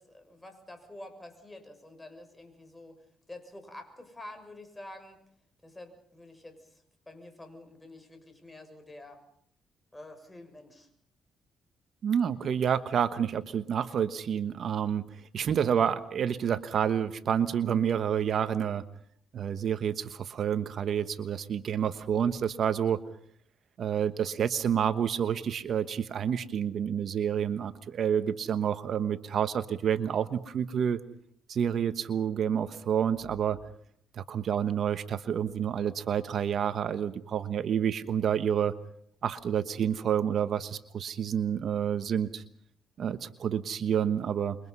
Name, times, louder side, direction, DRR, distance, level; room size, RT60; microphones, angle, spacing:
voice 1, 0.0-3.0 3.3-5.2 5.6-9.2 9.9-10.9, left 1 dB, 15° left, 6 dB, 6.5 m, -48 dB
voice 2, 12.0-18.8 19.3-23.0 23.8-31.0 31.5-33.6 34.2-38.7 39.2-42.4 43.0-44.6, right 8 dB, 60° right, 11 dB, 1.2 m, -29 dB
27.5 x 23.5 x 5.6 m, 0.65 s
cardioid pair, 90°, 0 cm